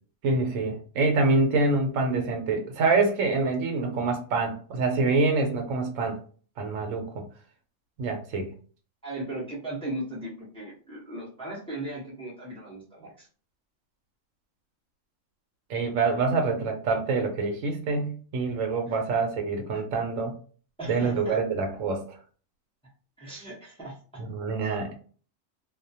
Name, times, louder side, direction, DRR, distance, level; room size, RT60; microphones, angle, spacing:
voice 1, 0.2-6.2 6.6-7.2 8.0-8.5 15.7-20.3 20.9-22.2 24.2-25.0, right 3 dB, 75° right, 4 dB, 1.0 m, -26 dB
voice 2, 9.0-13.3 18.9-19.0 20.8-21.4 23.2-24.2 24.6-24.8, right 1 dB, 5° left, -6 dB, 0.6 m, -37 dB
2.3 x 2.1 x 2.6 m, 0.41 s
omnidirectional pair, 1.4 m